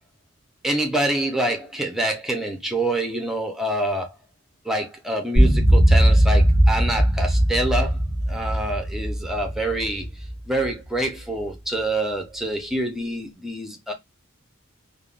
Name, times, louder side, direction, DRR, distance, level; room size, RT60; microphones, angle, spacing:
voice 1, 0.6-4.1 4.6-8.0 8.3-13.9, right 1 dB, ahead, 0.5 m, -26 dB
sound 1, 5.4-10.7, right 1 dB, 60° left, 1.4 m, -19 dB
3.4 x 2.0 x 2.4 m
head